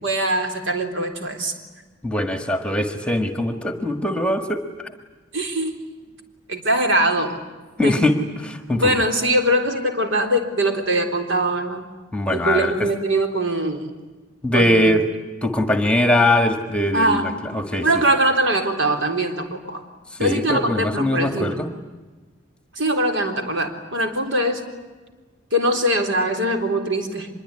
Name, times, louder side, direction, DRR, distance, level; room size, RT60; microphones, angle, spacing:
voice 1, 0.0-1.5 5.3-5.8 6.5-7.4 7.8-8.0 8.7-11.8 12.3-13.9 14.5-14.9 16.9-17.3 17.8-19.8 20.2-21.6 22.7-24.6 25.5-27.3, right 1 dB, 65° right, 6 dB, 3.9 m, -22 dB
voice 2, 2.0-4.6 7.8-8.1 8.4-8.9 12.1-12.7 14.4-15.0 15.4-17.9 20.2-21.7, left 1 dB, 5° left, 6 dB, 1.6 m, -21 dB
25.0 x 22.5 x 9.8 m, 1.3 s
head